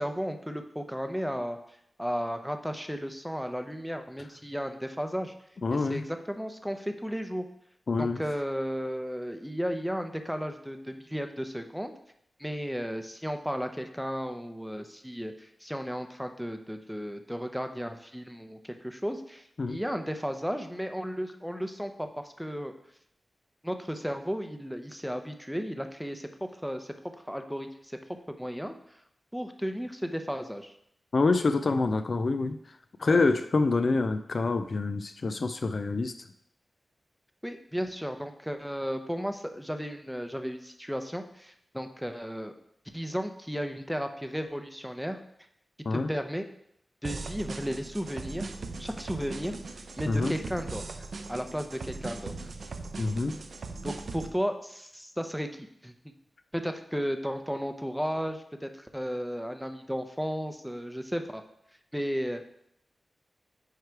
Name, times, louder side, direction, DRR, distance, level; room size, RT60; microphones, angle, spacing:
voice 1, 0.0-1.6 2.0-5.3 5.7-7.5 8.0-11.9 12.4-22.7 23.6-26.3 26.6-26.9 27.3-28.0 28.3-28.7 29.3-30.7 33.0-33.3 37.4-42.5 42.9-45.2 45.9-46.4 47.0-48.5 48.8-49.6 50.0-50.8 51.3-52.5 53.8-55.9 56.5-61.4 61.9-62.4, equal, ahead, 6 dB, 0.7 m, -34 dB
voice 2, 5.6-6.0 7.9-8.2 19.6-19.8 31.1-32.6 33.0-36.1 45.9-46.1 50.1-50.3 53.0-53.4, left 3 dB, 60° left, 9 dB, 0.4 m, -26 dB
sound 1, 47.0-54.3, right 3 dB, 75° right, 0.6 m, -39 dB
9.4 x 3.2 x 4.6 m, 0.75 s
cardioid pair, 65°, 0 cm